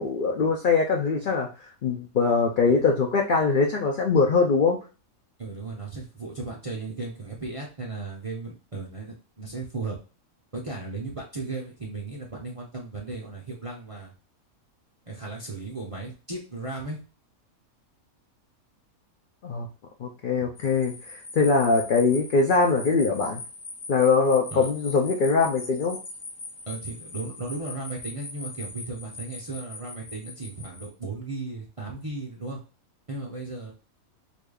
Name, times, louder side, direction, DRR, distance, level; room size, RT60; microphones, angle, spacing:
voice 1, 0.0-1.5 1.8-4.8 19.4-19.7 20.0-23.4 23.9-26.0, left 4 dB, 70° left, 1 dB, 0.4 m, -22 dB
voice 2, 5.4-10.0 10.5-14.1 15.1-17.0 20.4-20.5 24.5-24.7 26.7-32.6 33.1-33.7, right 3 dB, 40° right, -2 dB, 0.5 m, -36 dB
sound 1, 20.6-30.9, left 3 dB, 40° left, 0.8 m, -41 dB
4.9 x 2.7 x 2.3 m, 0.35 s
omnidirectional pair, 1.5 m